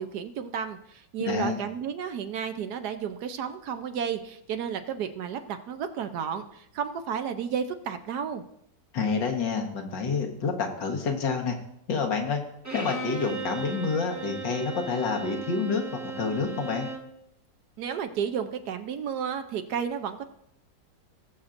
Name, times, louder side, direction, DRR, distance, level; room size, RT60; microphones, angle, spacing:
voice 1, 0.0-8.4 17.8-20.2, right 7 dB, 70° right, 8 dB, 1.2 m, -32 dB
voice 2, 1.3-1.7 8.9-11.6 11.9-12.4 12.7-16.9, left 5 dB, 80° left, 2 dB, 2.0 m, -28 dB
Bowed string instrument, 12.6-17.1, right 4 dB, 10° right, 1.0 m, -37 dB
19.0 x 7.3 x 2.6 m, 0.77 s
omnidirectional pair, 1.9 m